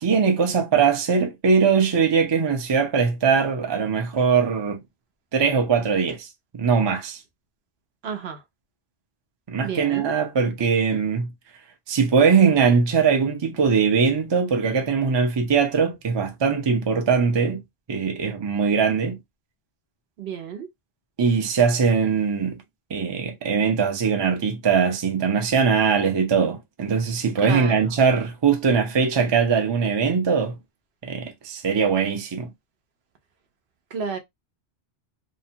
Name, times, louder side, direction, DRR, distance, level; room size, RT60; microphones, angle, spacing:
voice 1, 0.0-4.8 5.3-6.3 6.5-7.2 9.5-11.3 11.9-17.6 17.9-19.2 21.2-22.6 22.9-30.6 31.0-32.5, right 6 dB, 35° right, 0.4 m, -21 dB
voice 2, 8.0-8.4 9.6-10.1 20.2-20.7 27.4-27.9 33.9-34.2, right 6 dB, 75° right, 0.9 m, -31 dB
2.7 x 2.1 x 2.7 m
omnidirectional pair, 1.1 m